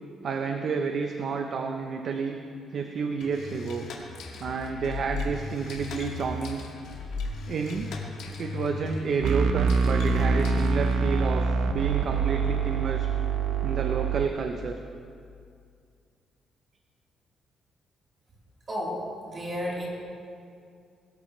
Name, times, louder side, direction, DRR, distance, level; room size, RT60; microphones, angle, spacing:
voice 1, 0.2-2.4 2.7-3.9 4.4-6.6 7.5-7.9 8.4-13.1 13.6-14.8, right 5 dB, 50° right, 4 dB, 0.8 m, -30 dB
sound 1, 3.2-11.2, left 3 dB, 80° left, 2.2 m, -37 dB
sound 2, 9.2-14.2, right 5 dB, 85° right, 1.0 m, -25 dB
voice 2, 18.7-19.9, equal, 30° right, -5 dB, 3.8 m, -32 dB
21.5 x 13.0 x 3.3 m, 2.3 s
cardioid pair, 145°, 0 cm